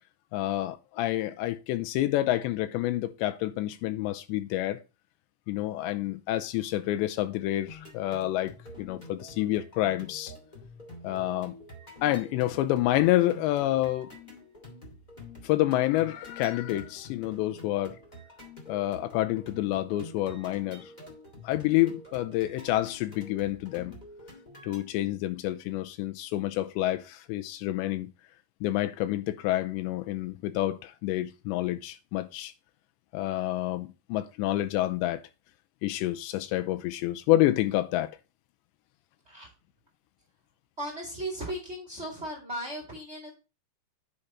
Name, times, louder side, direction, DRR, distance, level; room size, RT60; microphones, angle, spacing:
voice 1, 0.3-4.8 5.5-10.3 11.0-11.6 12.0-14.1 15.4-18.0 18.7-20.9 21.4-23.9 24.6-28.1 28.6-32.5 33.1-35.2 35.8-38.1, left 15 dB, 85° left, 2.9 m, -28 dB
sound 1, 7.7-24.8, left 1 dB, 40° left, 0.6 m, -47 dB
voice 2, 40.8-43.3, right 1 dB, 30° right, 1.3 m, -36 dB
9.9 x 5.1 x 4.3 m
omnidirectional pair, 5.3 m